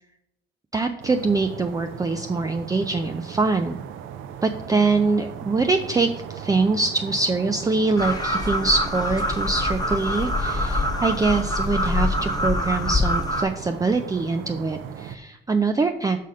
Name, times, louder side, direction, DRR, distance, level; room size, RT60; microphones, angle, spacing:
voice 1, 0.7-3.8 4.4-16.2, right 3 dB, 20° right, 6 dB, 0.4 m, -24 dB
sound 1, 1.0-15.2, right 9 dB, 85° right, 0.5 m, -37 dB
sound 2, 8.0-13.4, left 1 dB, 20° left, 1.1 m, -25 dB
6.2 x 4.1 x 5.2 m, 0.80 s
cardioid pair, 90°, 20 cm